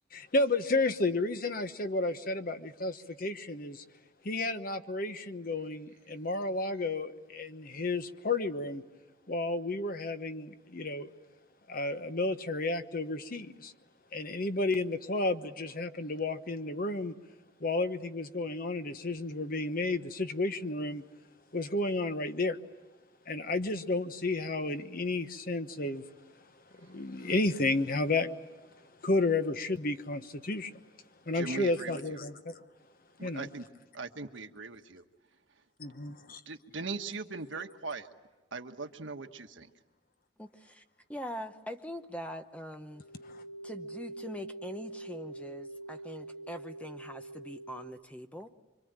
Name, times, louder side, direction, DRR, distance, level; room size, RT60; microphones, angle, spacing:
voice 1, 0.1-3.8 4.2-8.8 9.3-11.1 11.7-13.7 14.1-17.1 17.6-21.0 21.5-22.6 23.3-26.0 26.8-28.3 29.0-30.7 31.3-32.6 33.2-33.5 35.8-36.4 43.3-43.4, left 2 dB, 50° left, 1.2 m, -32 dB
voice 2, 31.3-32.2 33.2-33.6 33.9-35.0 36.5-38.1 38.5-39.7, right 4 dB, 90° right, 1.4 m, -40 dB
voice 3, 40.4-40.8 41.1-43.0 43.6-48.5, equal, 5° left, 0.9 m, -43 dB
sound 1, 42.9-47.9, right 2 dB, 80° left, 5.3 m, -44 dB
26.0 x 24.5 x 9.0 m
head